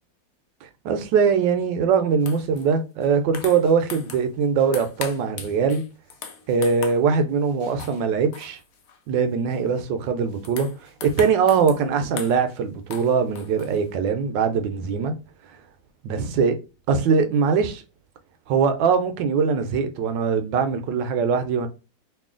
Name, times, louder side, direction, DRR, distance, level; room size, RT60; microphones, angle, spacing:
voice 1, 0.8-5.8 6.5-8.6 9.1-15.1 16.0-16.6 16.9-17.8 18.5-21.7, right 6 dB, 80° right, 1.2 m, -22 dB
sound 1, 2.2-2.7 3.0-4.3 4.6-7.0 7.5-8.0 8.3-9.0 9.5-9.8 10.2-11.8 12.2-12.6 12.9-13.9, left 7 dB, 70° left, 0.8 m, -39 dB
3.0 x 2.7 x 3.6 m
omnidirectional pair, 2.0 m